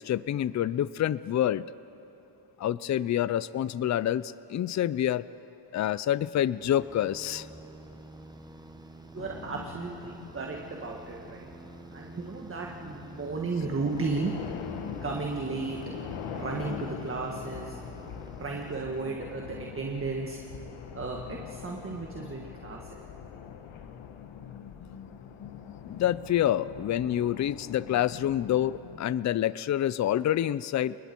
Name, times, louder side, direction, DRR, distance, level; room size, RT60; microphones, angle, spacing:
voice 1, 0.0-1.7 2.6-5.2 5.7-7.5 25.9-31.0, left 11 dB, 40° left, 18 dB, 0.4 m, -27 dB
sound 1, 6.5-19.4, right 2 dB, 10° right, 1.0 m, -48 dB
voice 2, 9.1-11.5 11.9-14.3 15.0-15.8 16.3-17.8 18.4-20.4 20.9-23.0, right 4 dB, 30° right, 0 dB, 1.6 m, -34 dB
sound 2, 9.2-29.0, left 8 dB, 90° left, 1.3 m, -43 dB
30.0 x 20.5 x 4.5 m, 2.9 s
cardioid pair, 110°, 45 cm